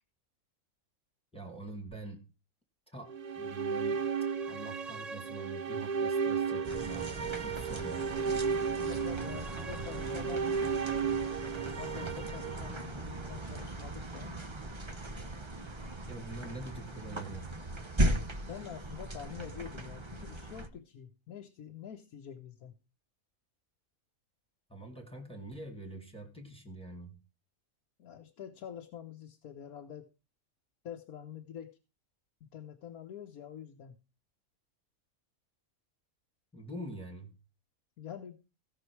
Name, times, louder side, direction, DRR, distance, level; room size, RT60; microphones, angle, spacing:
voice 1, 1.3-2.3 2.9-4.1 4.5-7.2 7.4-8.1 16.1-17.5 24.7-27.2 36.5-37.4, right 2 dB, 5° left, 2.2 m, -45 dB
sound 1, 3.1-13.3, right 6 dB, 40° right, 0.6 m, -34 dB
sound 2, 6.6-20.7, right 1 dB, 20° right, 1.0 m, -38 dB
voice 2, 8.6-11.0 11.5-14.4 18.4-22.7 28.0-30.1 30.8-31.8 32.4-33.9 38.0-38.4, left 9 dB, 90° left, 1.5 m, -46 dB
16.5 x 6.2 x 4.6 m
omnidirectional pair, 1.5 m